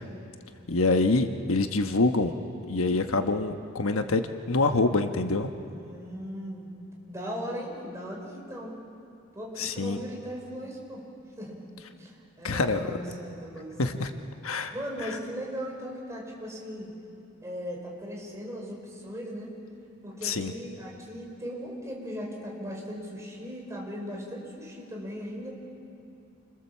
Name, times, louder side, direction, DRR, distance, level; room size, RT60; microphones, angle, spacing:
voice 1, 0.7-2.3 2.7-5.5 9.6-10.0 12.4-12.9 13.8-14.1 14.4-14.7 15.0-15.2 20.2-20.5, left 3 dB, 85° left, 7 dB, 1.2 m, -25 dB
voice 2, 5.7-6.7 7.1-8.8 9.3-11.0 11.4-11.6 11.9-14.0 14.7-16.9 17.4-19.5 20.0-25.6, equal, 15° right, -2 dB, 5.2 m, -38 dB
29.0 x 23.5 x 7.3 m, 2.7 s
head